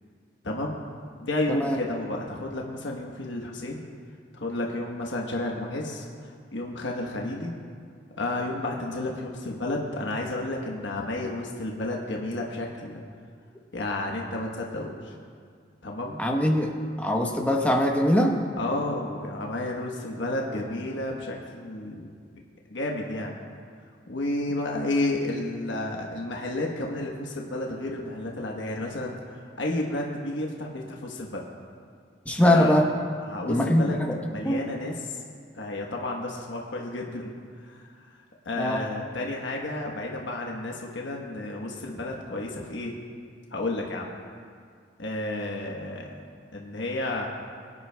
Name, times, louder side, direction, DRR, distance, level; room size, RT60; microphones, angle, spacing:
voice 1, 0.4-0.8 1.2-3.8 4.4-7.5 8.2-13.0 13.7-15.1 15.8-16.2 18.6-22.1 22.7-23.3 24.1-31.4 32.4-32.8 33.2-34.0 34.3-35.2 35.5-37.3 37.6-42.9 43.5-44.1 45.0-46.1 46.5-47.3, left 2 dB, 75° left, -1 dB, 1.1 m, -31 dB
voice 2, 16.2-16.7 17.0-18.4 32.3-32.9 33.5-34.1 34.4-34.6 38.6-38.8, left 1 dB, 10° left, 1 dB, 0.9 m, -22 dB
22.5 x 9.7 x 2.3 m, 2.1 s
head